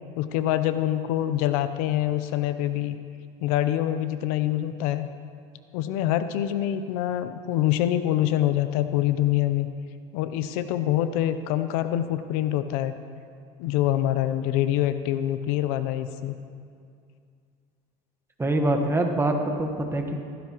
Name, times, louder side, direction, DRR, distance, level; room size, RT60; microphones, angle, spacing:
voice 1, 0.2-3.0 3.4-5.1 5.7-9.7 10.1-12.9 13.6-16.3, left 12 dB, 80° left, 11 dB, 0.7 m, -25 dB
voice 2, 18.4-20.2, right 1 dB, 15° right, 3 dB, 1.3 m, -24 dB
15.5 x 15.0 x 3.0 m, 2.3 s
cardioid pair, 125°, 18 cm